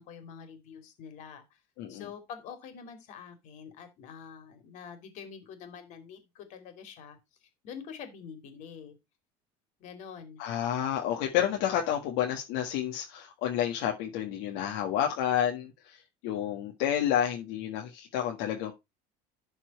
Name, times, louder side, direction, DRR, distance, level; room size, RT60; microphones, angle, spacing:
voice 1, 0.0-1.4 1.9-7.2 7.6-9.0 9.8-10.4, left 7 dB, 55° left, 2.8 m, -46 dB
voice 2, 1.8-2.1 10.4-18.7, left 10 dB, 75° left, 1.6 m, -30 dB
12.0 x 4.5 x 4.4 m
cardioid pair, 160°, 15 cm